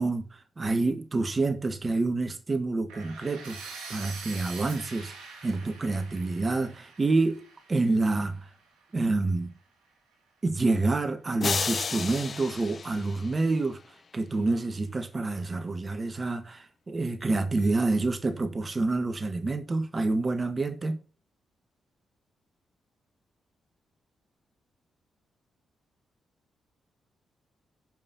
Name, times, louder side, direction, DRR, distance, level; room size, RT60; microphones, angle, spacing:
voice 1, 0.0-5.1 5.4-8.5 8.9-9.5 10.4-13.8 14.1-21.0, right 3 dB, 35° right, 1.5 m, -28 dB
sound 1, 2.9-8.8, right 4 dB, 85° right, 2.9 m, -45 dB
sound 2, 11.4-13.8, left 5 dB, 50° left, 0.4 m, -32 dB
15.5 x 5.6 x 2.8 m
supercardioid pair, 45°, 0 cm